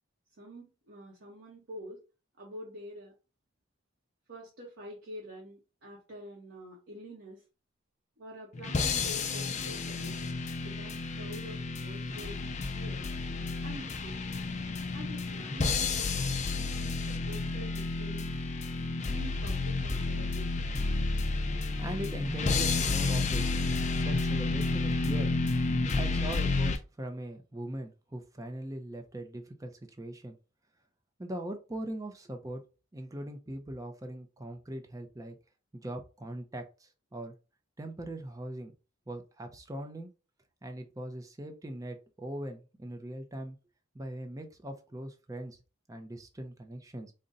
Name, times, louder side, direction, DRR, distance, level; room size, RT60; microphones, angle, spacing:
voice 1, 0.4-2.0 2.4-3.1 4.3-7.4 8.2-12.4 12.7-13.1 13.6-14.5 14.9-18.4 19.1-20.7, equal, 60° right, 0.9 m, -47 dB
sound 1, 8.5-26.8, left 3 dB, 35° left, 0.4 m, -31 dB
voice 2, 21.4-23.4 24.0-25.3 25.9-30.4 31.2-32.6 32.9-35.4 35.7-37.4 37.8-38.7 39.1-40.1 40.6-43.6 43.9-45.6 45.9-47.1, right 1 dB, 15° right, 0.5 m, -40 dB
3.9 x 2.1 x 3.7 m
head